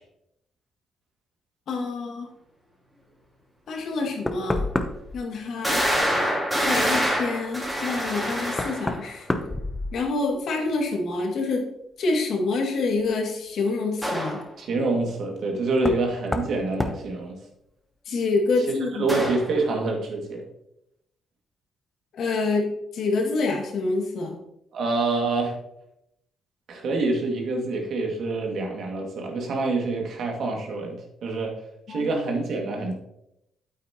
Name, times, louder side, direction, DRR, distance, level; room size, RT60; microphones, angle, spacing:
voice 1, 1.7-2.3 3.7-4.7 5.1-5.8 6.6-9.5 9.9-11.6 12.0-14.4 18.1-19.2 22.1-24.4 31.9-32.1, left 3 dB, 65° left, 1 dB, 2.2 m, -27 dB
Knock, 3.8-3.9 4.3-5.2 7.6-7.7 8.5-10.4 10.7-11.3 13.0-13.1 15.8-16.1 16.3-16.5 16.8-17.0, left 2 dB, 15° left, 0.8 m, -29 dB
sound 1, 4.0-4.1 4.7-4.8 5.6-9.1 14.0-14.4 19.1-19.6, equal, 10° right, 2.8 m, -26 dB
voice 2, 14.6-17.4 18.9-20.4 24.7-25.6 26.7-31.6 31.9-32.9, right 3 dB, 65° right, 1 dB, 2.1 m, -26 dB
8.6 x 8.5 x 2.9 m, 0.80 s
cardioid pair, 90°, 0 cm